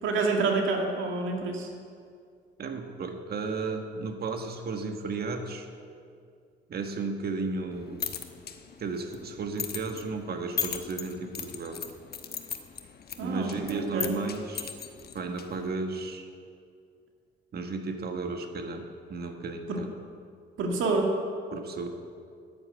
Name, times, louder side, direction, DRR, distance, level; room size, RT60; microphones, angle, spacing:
voice 1, 0.0-1.7 13.2-14.1 19.7-19.8 20.6-21.1, right 3 dB, 80° right, 1 dB, 2.1 m, -28 dB
voice 2, 2.6-5.7 6.7-8.0 8.8-11.8 13.2-14.7 15.1-16.3 17.5-19.9 21.5-21.9, right 3 dB, 50° right, 5 dB, 1.5 m, -34 dB
sound 1, 7.7-15.8, left 7 dB, 50° left, 1.0 m, -39 dB
10.0 x 9.3 x 8.2 m, 2.3 s
cardioid pair, 90°, 20 cm